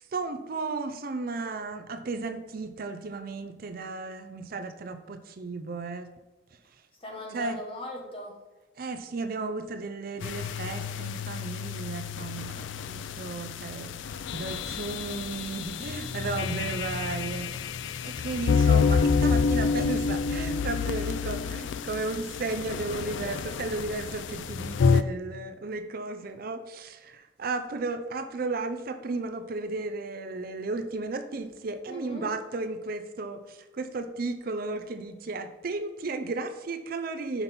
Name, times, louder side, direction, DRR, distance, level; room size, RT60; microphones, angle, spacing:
voice 1, 0.1-6.1 7.3-7.6 8.8-17.5 18.0-37.4, right 3 dB, 50° right, 9 dB, 0.5 m, -34 dB
voice 2, 7.0-8.3 16.2-16.7 31.9-32.3, left 1 dB, 30° left, 0 dB, 1.5 m, -40 dB
sound 1, 10.2-25.0, left 5 dB, 75° left, 0.4 m, -28 dB
5.9 x 5.7 x 5.2 m, 1.1 s
head